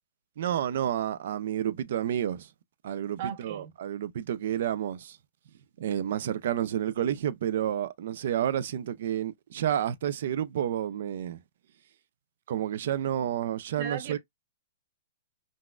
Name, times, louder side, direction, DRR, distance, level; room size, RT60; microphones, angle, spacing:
voice 1, 0.4-2.5 2.8-5.2 5.8-11.4 12.5-14.2, right 10 dB, 55° right, 0.4 m, -30 dB
voice 2, 3.2-3.7 13.8-14.2, right 8 dB, 40° right, 0.8 m, -36 dB
3.9 x 2.4 x 2.2 m
hypercardioid pair, 170°, 0 cm